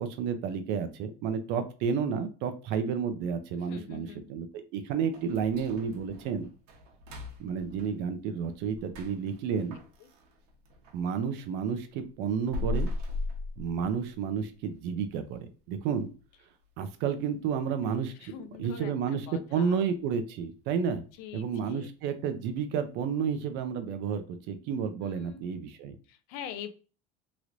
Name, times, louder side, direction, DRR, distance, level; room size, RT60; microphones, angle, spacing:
voice 1, 0.0-4.5 4.7-6.5 7.4-9.8 10.9-12.9 13.6-16.1 16.8-18.3 18.6-21.0 21.3-26.0, right 6 dB, 60° right, 9 dB, 0.6 m, -31 dB
voice 2, 3.5-4.3 10.0-10.1 18.2-19.8 21.2-21.9 25.0-25.4 26.1-26.7, left 8 dB, 75° left, 10 dB, 0.5 m, -44 dB
sound 1, 5.1-11.1 11.4-14.3 14.6-14.7 15.2-15.3 15.9-16.2 16.5-16.6 17.2-17.3, left 2 dB, 80° right, 1.0 m, -38 dB
3.1 x 3.0 x 2.5 m, 0.36 s
cardioid pair, 150°, 20 cm